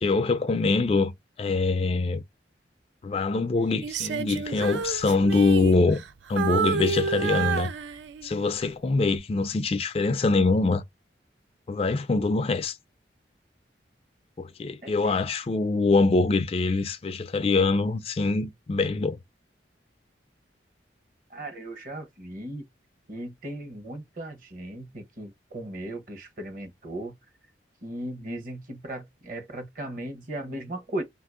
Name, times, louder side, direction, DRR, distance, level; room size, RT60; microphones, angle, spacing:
voice 1, 0.0-1.1 1.4-2.2 3.0-6.0 6.3-7.7 8.2-10.8 11.7-12.8 14.4-19.2, left 3 dB, 35° left, 0.3 m, -24 dB
Female singing, 3.8-6.1 6.4-8.4 8.9-9.2, right 6 dB, 80° right, 0.4 m, -30 dB
voice 2, 14.8-15.2 21.3-22.6 23.1-27.1 27.8-31.0, right 1 dB, 50° right, 0.9 m, -37 dB
2.7 x 2.6 x 3.5 m
head